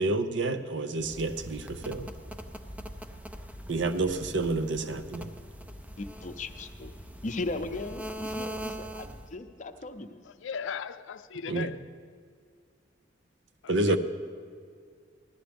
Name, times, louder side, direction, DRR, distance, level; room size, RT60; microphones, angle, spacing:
voice 1, 0.0-2.1 3.7-5.3 11.5-11.7 13.7-14.0, right 2 dB, 70° right, 10 dB, 0.6 m, -29 dB
sound 1, 1.0-9.4, equal, 10° right, 0.4 m, -42 dB
voice 2, 6.0-6.9 7.2-10.2, left 2 dB, 40° left, 7 dB, 0.6 m, -37 dB
voice 3, 10.2-11.8 13.6-14.0, left 6 dB, 80° left, 13 dB, 0.4 m, -37 dB
15.5 x 11.5 x 3.5 m, 2.1 s
head